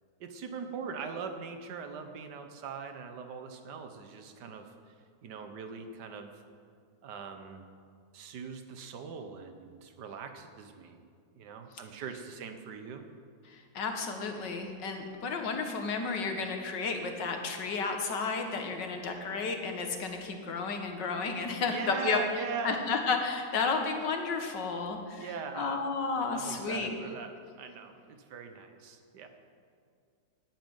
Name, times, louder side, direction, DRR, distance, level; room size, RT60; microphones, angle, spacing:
voice 1, 0.2-4.9 5.2-6.3 7.0-7.7 8.1-11.0 11.3-13.0 21.7-22.8 25.2-25.9 26.3-29.3, right 6 dB, 75° right, 7 dB, 1.6 m, -41 dB
voice 2, 13.5-22.2 22.6-25.3 25.5-27.0, left 4 dB, 90° left, 4 dB, 2.0 m, -32 dB
10.0 x 9.1 x 9.6 m, 2.2 s
omnidirectional pair, 1.8 m